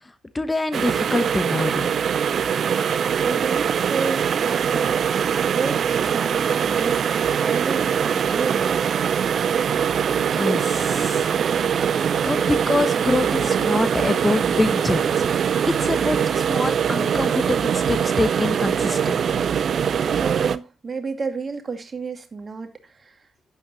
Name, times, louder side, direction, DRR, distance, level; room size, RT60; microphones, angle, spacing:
voice 1, 0.0-1.9 10.1-11.3 11.9-15.3 15.7-19.5, left 2 dB, 20° left, 1.1 m, -25 dB
sound 1, 0.7-20.6, right 7 dB, 55° right, 0.6 m, -22 dB
voice 2, 2.6-7.1 7.4-9.2 20.1-23.1, right 4 dB, 40° right, 2.3 m, -31 dB
11.5 x 9.2 x 2.9 m
hypercardioid pair, 45°, 0 cm